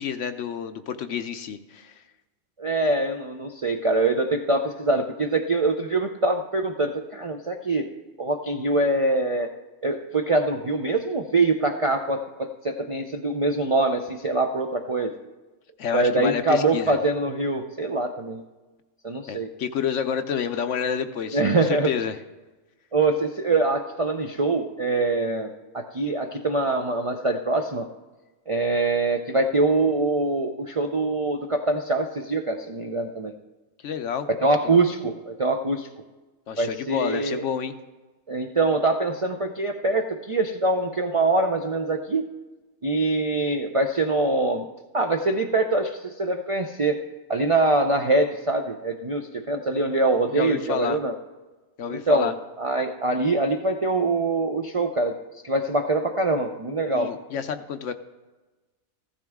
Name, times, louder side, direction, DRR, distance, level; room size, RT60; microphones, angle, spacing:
voice 1, 0.0-2.0 15.8-17.0 19.3-22.2 33.8-34.3 34.6-34.8 36.5-37.7 50.3-51.0 51.8-52.3 56.9-57.9, left 7 dB, 65° left, 9 dB, 1.0 m, -29 dB
voice 2, 2.6-7.9 8.2-9.5 9.8-15.1 15.9-18.4 19.0-19.5 21.3-21.9 22.9-27.9 28.5-33.3 34.4-35.9 36.6-37.4 38.3-42.3 42.8-44.7 44.9-47.0 47.3-51.1 51.9-55.2 55.4-57.1, right 2 dB, 45° right, 4 dB, 0.4 m, -24 dB
15.0 x 12.5 x 3.6 m, 1.2 s
omnidirectional pair, 1.4 m